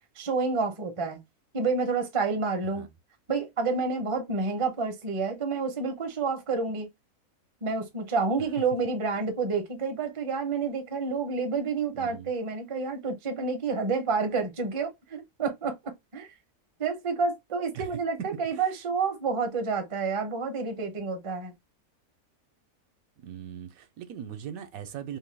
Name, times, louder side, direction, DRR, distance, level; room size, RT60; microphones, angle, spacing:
voice 1, 0.2-1.2 1.5-2.8 3.3-6.9 7.6-15.7 16.1-16.3 16.8-21.5, right 4 dB, 35° right, 0.5 m, -29 dB
voice 2, 11.9-12.3 17.7-17.9 18.5-18.6 23.2-25.2, right 9 dB, 80° right, 1.0 m, -40 dB
2.7 x 2.2 x 3.2 m
omnidirectional pair, 1.5 m